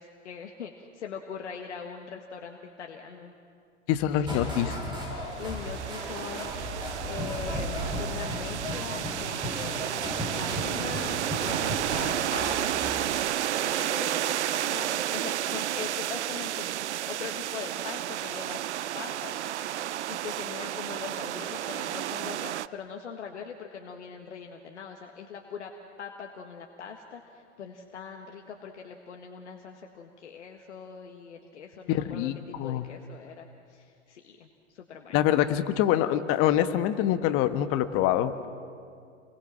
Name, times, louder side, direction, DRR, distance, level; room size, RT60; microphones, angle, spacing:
voice 1, 0.0-3.3 5.4-9.9 10.4-13.0 13.6-16.7 17.1-18.6 19.0-19.8 20.1-25.7 26.0-35.2, left 6 dB, 70° left, 3 dB, 1.7 m, -41 dB
voice 2, 3.9-4.8 31.9-32.9 35.1-38.5, left 11 dB, 35° left, 10 dB, 1.4 m, -25 dB
sound 1, 4.3-13.2, equal, 15° right, 6.2 m, -35 dB
sound 2, 5.3-22.7, right 12 dB, 70° right, 0.6 m, -32 dB
29.0 x 22.0 x 6.1 m, 2.4 s
figure-of-eight pair, 100°, 36 cm